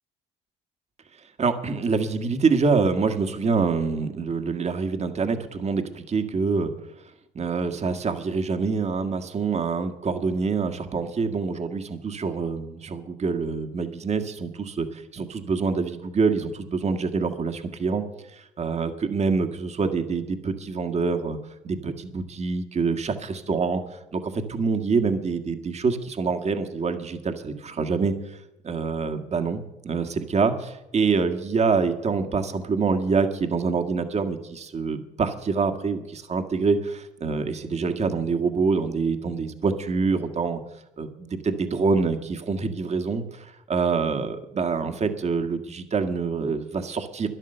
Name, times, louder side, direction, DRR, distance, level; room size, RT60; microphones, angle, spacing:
voice 1, 1.4-6.7 7.3-18.0 18.6-21.4 21.6-23.8 24.1-28.1 28.6-40.6 41.0-47.3, right 4 dB, 40° right, 7 dB, 1.7 m, -26 dB
12.5 x 11.0 x 6.8 m, 0.90 s
supercardioid pair, 70°, 18 cm